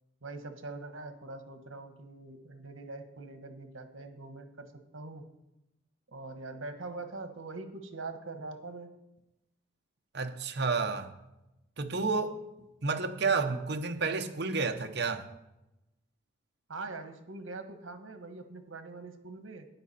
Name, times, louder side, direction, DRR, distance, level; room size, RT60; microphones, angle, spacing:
voice 1, 0.2-5.3 6.1-8.9 16.7-19.7, right 3 dB, 80° right, 1.4 m, -43 dB
voice 2, 10.1-11.1 11.8-12.4 12.8-15.3, right 4 dB, 55° right, 0.9 m, -30 dB
12.5 x 10.0 x 4.3 m
head